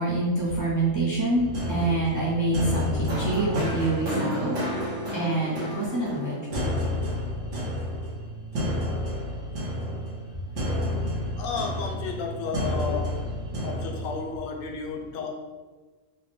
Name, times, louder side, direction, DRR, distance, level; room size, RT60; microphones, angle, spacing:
voice 1, 0.0-6.7 13.5-13.6, right 2 dB, 25° right, -6 dB, 0.5 m, -27 dB
sound 1, 1.3-14.2, left 1 dB, 75° right, 1.3 m, -30 dB
voice 2, 10.5-13.2 13.6-15.3, left 5 dB, 80° left, 2 dB, 1.0 m, -33 dB
4.5 x 2.1 x 3.1 m, 1.3 s
omnidirectional pair, 1.4 m